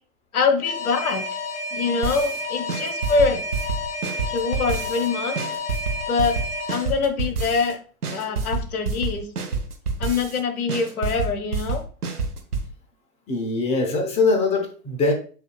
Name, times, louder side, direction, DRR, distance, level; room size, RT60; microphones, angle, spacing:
voice 1, 0.3-1.2 1.7-3.4 4.3-5.4 6.1-6.4 6.7-7.8 8.1-9.3 10.0-11.8, left 4 dB, 75° left, 8 dB, 0.9 m, -24 dB
Alarm, 0.6-6.9, left 2 dB, 50° left, 1.6 m, -31 dB
sound 1, 2.0-2.4 2.7-5.1 5.4-7.7 8.0-10.4 10.7-12.7, right 4 dB, 90° right, 1.0 m, -28 dB
voice 2, 13.3-15.1, left 3 dB, 15° left, 3 dB, 0.7 m, -22 dB
8.0 x 2.7 x 2.2 m, 0.40 s
hypercardioid pair, 105°, 44 cm